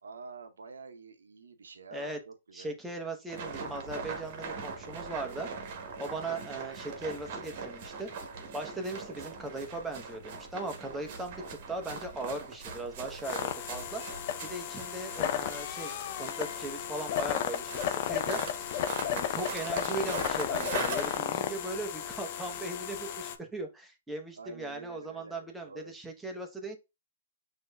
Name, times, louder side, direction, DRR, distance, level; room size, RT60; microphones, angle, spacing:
voice 1, 0.0-3.0 11.0-11.2 24.4-25.9, right 4 dB, 80° right, 0.7 m, -48 dB
voice 2, 2.5-5.5 6.0-8.1 8.5-13.4 13.7-14.0 14.4-18.7 19.1-26.8, right 2 dB, 5° right, 0.8 m, -38 dB
sound 1, 3.3-21.2, right 5 dB, 45° right, 1.1 m, -42 dB
sound 2, 13.2-23.4, left 10 dB, 45° left, 0.5 m, -34 dB
6.1 x 2.7 x 2.2 m
hypercardioid pair, 130°, 0 cm